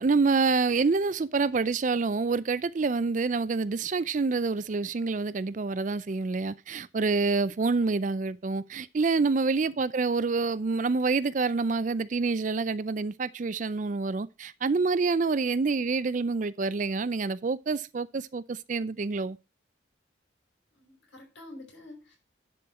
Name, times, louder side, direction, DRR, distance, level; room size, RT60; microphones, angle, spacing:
voice 1, 0.0-19.4, right 4 dB, 40° right, 0.4 m, -27 dB
voice 2, 20.7-22.2, left 1 dB, 70° left, 5.8 m, -48 dB
10.5 x 4.5 x 6.2 m
head